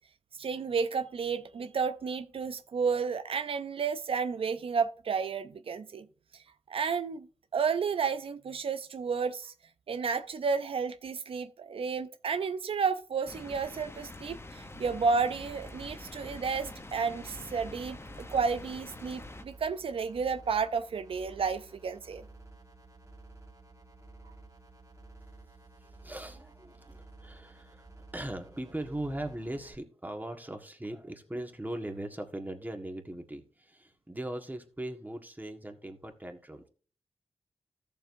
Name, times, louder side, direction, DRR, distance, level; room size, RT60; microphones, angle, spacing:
voice 1, 0.4-6.0 6.7-7.3 7.5-9.5 9.9-22.2, right 5 dB, 65° right, 0.5 m, -31 dB
sound 1, 13.3-19.4, left 2 dB, 25° left, 0.9 m, -46 dB
sound 2, 15.3-29.7, right 2 dB, 35° right, 3.1 m, -53 dB
voice 2, 25.8-27.9 28.1-36.7, right 1 dB, 15° right, 1.6 m, -39 dB
13.5 x 7.1 x 2.7 m
cardioid pair, 45°, 10 cm